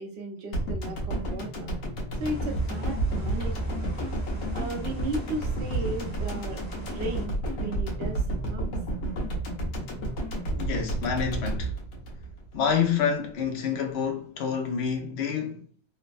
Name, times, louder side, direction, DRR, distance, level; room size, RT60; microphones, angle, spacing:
voice 1, 0.0-1.8 2.2-3.9 4.5-6.6 6.9-8.7, right 2 dB, 55° right, 0.8 m, -35 dB
sound 1, 0.5-12.9 13.2-13.3, right 2 dB, 85° left, 1.2 m, -31 dB
sound 2, 2.2-7.3, right 1 dB, 15° left, 0.7 m, -37 dB
voice 2, 10.5-11.7 12.5-15.7, left 7 dB, 65° left, 0.7 m, -28 dB
3.1 x 2.1 x 2.4 m
omnidirectional pair, 1.5 m